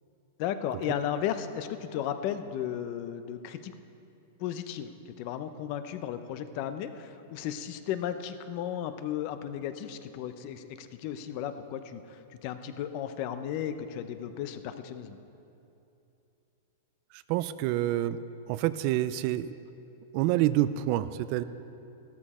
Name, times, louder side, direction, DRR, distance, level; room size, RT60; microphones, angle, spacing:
voice 1, 0.4-3.7 4.4-4.9 5.2-15.2, left 10 dB, 40° left, 10 dB, 0.7 m, -35 dB
voice 2, 17.1-18.2 18.5-19.6 20.1-21.4, right 14 dB, 40° right, 14 dB, 0.4 m, -27 dB
14.5 x 13.0 x 4.3 m, 2.8 s
supercardioid pair, 160°, 0 cm